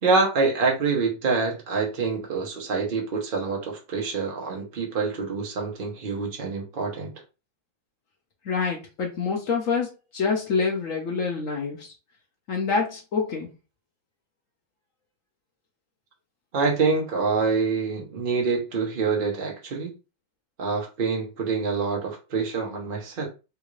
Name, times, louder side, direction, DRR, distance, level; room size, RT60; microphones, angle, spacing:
voice 1, 0.0-7.1 16.5-19.9 20.6-23.3, right 4 dB, 55° right, 0.6 m, -26 dB
voice 2, 8.4-11.9 12.5-13.5, left 5 dB, 80° left, 0.7 m, -26 dB
3.6 x 2.4 x 3.1 m
omnidirectional pair, 2.2 m